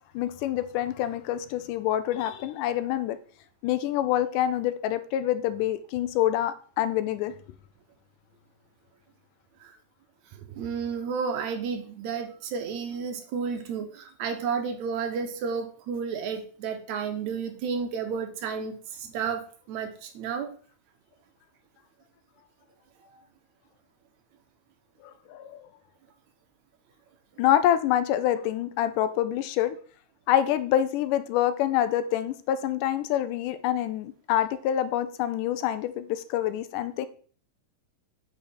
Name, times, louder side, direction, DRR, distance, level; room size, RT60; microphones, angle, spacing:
voice 1, 0.2-3.2 3.6-7.3 25.3-25.6 27.4-29.8 30.3-37.1, left 11 dB, 85° left, 11 dB, 2.2 m, -26 dB
voice 2, 10.5-20.5, right 6 dB, 70° right, 6 dB, 2.2 m, -32 dB
8.6 x 4.7 x 4.3 m, 0.43 s
omnidirectional pair, 3.6 m